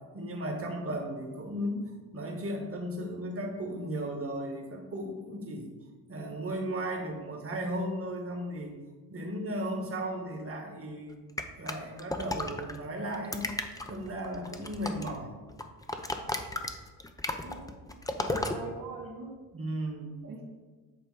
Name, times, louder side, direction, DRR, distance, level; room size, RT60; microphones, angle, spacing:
voice 1, 0.1-1.8 2.1-5.7 6.1-8.8 9.1-11.2 11.6-13.5 13.9-15.3 19.5-20.3, right 1 dB, 40° right, 2 dB, 1.4 m, -35 dB
sound 1, 11.4-12.8 13.1-15.2 15.5-18.6, left 2 dB, 10° left, 0.6 m, -34 dB
voice 2, 17.4-19.3 20.2-20.4, right 3 dB, 70° right, -1 dB, 1.2 m, -43 dB
8.0 x 3.2 x 4.8 m, 1.3 s
supercardioid pair, 65°, 35 cm